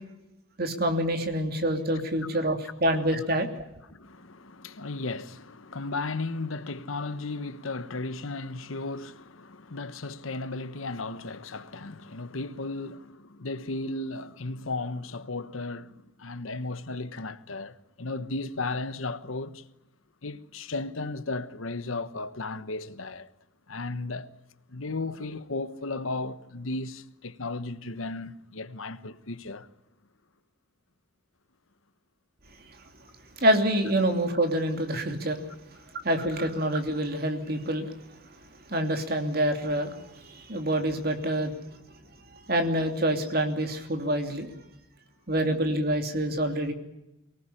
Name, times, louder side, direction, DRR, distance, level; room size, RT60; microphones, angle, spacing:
voice 1, 0.6-3.6 33.4-35.4 36.0-37.9 38.7-41.5 42.5-44.5 45.3-46.7, right 1 dB, 50° right, 2.8 m, -26 dB
voice 2, 3.9-19.6 20.2-23.3 23.7-24.3 24.7-29.7, left 3 dB, 85° left, 1.2 m, -35 dB
23.5 x 18.5 x 10.0 m
head